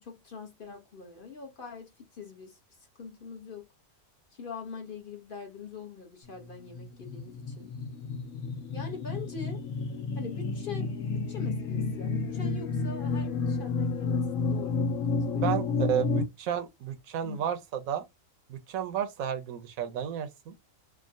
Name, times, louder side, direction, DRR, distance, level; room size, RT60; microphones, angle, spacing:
voice 1, 0.0-3.7 4.3-7.7 8.7-9.7 10.1-14.9 15.1-15.7 16.1-16.2 17.2-17.4, left 5 dB, 45° left, 0.8 m, -43 dB
sound 1, 6.5-16.2, left 4 dB, 75° left, 1.1 m, -31 dB
voice 2, 15.3-18.1 18.5-20.6, right 9 dB, 85° right, 1.1 m, -32 dB
3.6 x 2.1 x 2.4 m
omnidirectional pair, 1.4 m